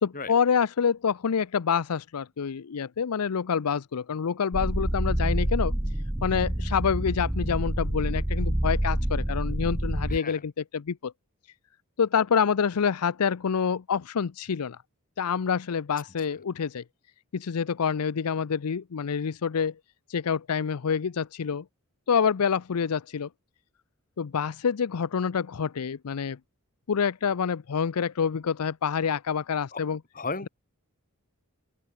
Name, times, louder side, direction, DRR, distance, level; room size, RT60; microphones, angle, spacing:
voice 1, 0.0-5.7 6.2-11.1 12.0-14.8 15.2-16.8 17.3-19.7 20.1-21.6 22.1-23.3 24.2-26.4 26.9-30.0, left 6 dB, 90° left, 0.5 m, -27 dB
sound 1, 4.5-10.2, right 1 dB, 10° right, 0.8 m, -27 dB
voice 2, 10.1-10.4 29.7-29.8 30.1-30.5, left 4 dB, 40° left, 6.0 m, -34 dB
head